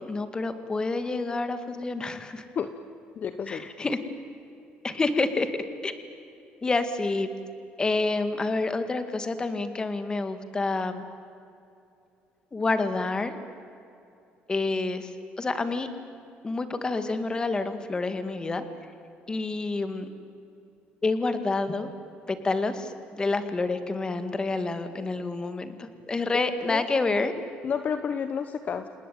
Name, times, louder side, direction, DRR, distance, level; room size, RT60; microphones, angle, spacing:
voice 1, 0.0-2.4 3.5-4.0 4.8-6.0 6.6-7.3 7.8-11.0 12.5-13.4 14.5-15.1 15.4-15.9 16.4-18.6 19.3-20.1 21.0-21.9 22.3-27.3, left 3 dB, 20° left, 10 dB, 2.1 m, -28 dB
voice 2, 3.2-4.0 26.7-26.8 27.6-28.9, left 7 dB, 45° left, 10 dB, 1.1 m, -31 dB
29.0 x 19.0 x 9.3 m, 2.7 s
cardioid pair, 125°, 4 cm